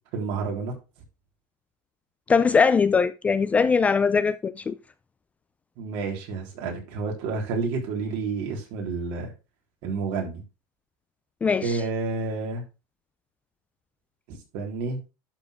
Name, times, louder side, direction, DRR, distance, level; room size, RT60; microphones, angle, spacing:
voice 1, 0.1-0.7 5.8-9.3 9.8-10.4 11.6-12.6 14.3-15.0, right 4 dB, 60° right, 3.9 m, -30 dB
voice 2, 2.3-4.7 11.4-11.8, left 5 dB, 15° left, 0.3 m, -21 dB
11.5 x 4.6 x 3.4 m
supercardioid pair, 150°, 9 cm